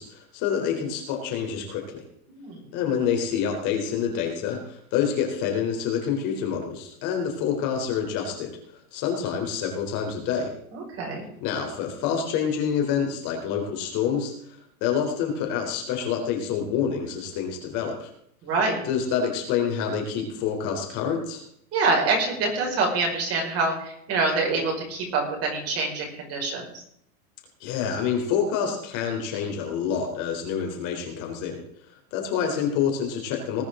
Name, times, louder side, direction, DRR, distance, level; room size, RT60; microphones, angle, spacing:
voice 1, 0.0-2.0 2.7-8.6 8.9-10.5 11.4-18.1 18.9-21.4 27.6-31.6 32.1-33.6, left 7 dB, 40° left, 2 dB, 3.8 m, -27 dB
voice 2, 2.3-2.7 10.7-11.3 18.4-18.8 21.7-26.8, right 3 dB, 30° right, -1 dB, 5.7 m, -26 dB
20.0 x 9.9 x 3.9 m, 0.71 s
supercardioid pair, 150°, 45 cm